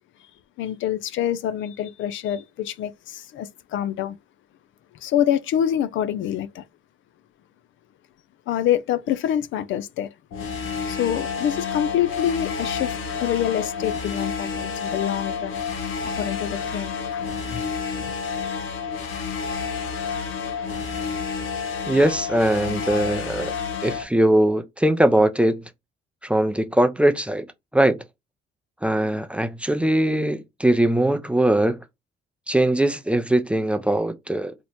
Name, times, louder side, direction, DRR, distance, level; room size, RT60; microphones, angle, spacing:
voice 1, 0.6-4.2 5.0-6.6 8.5-10.1 10.9-15.6 16.1-17.6 17.9-18.0, left 10 dB, 75° left, 0.4 m, -26 dB
sound 1, 10.3-24.0, left 5 dB, 90° left, 0.8 m, -29 dB
voice 2, 21.9-23.5 23.8-25.6 26.2-27.5 27.7-28.0 28.8-31.8 32.5-34.5, right 1 dB, 5° right, 0.4 m, -21 dB
3.0 x 2.1 x 4.0 m
cardioid pair, 90°, 20 cm